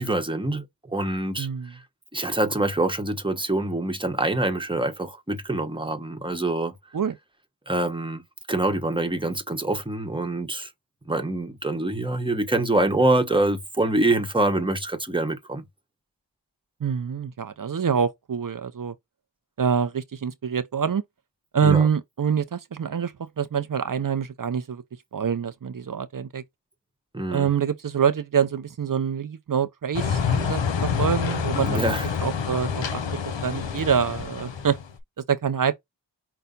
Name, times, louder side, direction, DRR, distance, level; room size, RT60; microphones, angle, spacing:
voice 1, 0.0-1.5 2.1-6.7 7.7-8.2 8.5-10.7 11.1-15.6 21.6-21.9 27.1-27.5 31.7-32.1, right 2 dB, 10° right, 1.0 m, -25 dB
voice 2, 1.4-1.7 6.9-7.1 16.8-18.9 19.6-21.0 21.5-24.8 25.1-26.4 27.3-31.9 32.2-34.8 35.2-35.8, right 7 dB, 45° right, 0.6 m, -26 dB
sound 1, 29.9-34.9, left 7 dB, 70° left, 0.9 m, -27 dB
5.6 x 2.2 x 3.8 m
wide cardioid pair, 55°, 45 cm